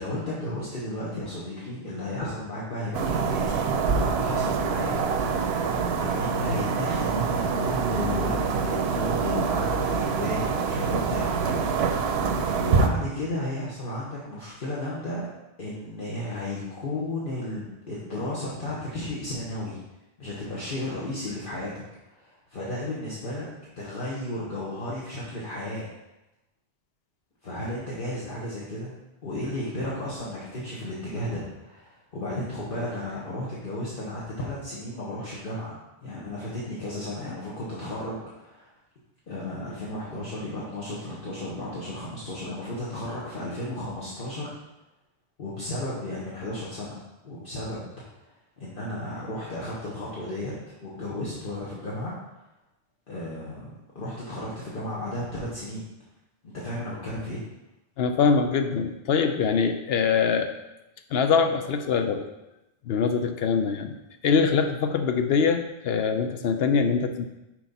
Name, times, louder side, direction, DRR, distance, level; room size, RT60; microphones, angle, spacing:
voice 1, 0.0-11.3 12.6-15.3 15.6-19.8 20.2-21.8 22.1-23.5 23.8-25.8 27.4-28.9 29.2-38.7 39.3-44.6 45.4-47.0 47.2-48.2 48.6-50.5 50.8-52.1 53.1-55.8 56.4-57.4, left 1 dB, 55° left, -7 dB, 1.3 m, -34 dB
sound 1, 2.9-12.9, right 5 dB, 75° right, 0.9 m, -25 dB
voice 2, 58.0-60.5 61.1-62.2 62.9-64.0 64.2-67.3, left 5 dB, 75° left, 7 dB, 0.8 m, -23 dB
6.1 x 4.7 x 4.0 m, 0.95 s
omnidirectional pair, 1.1 m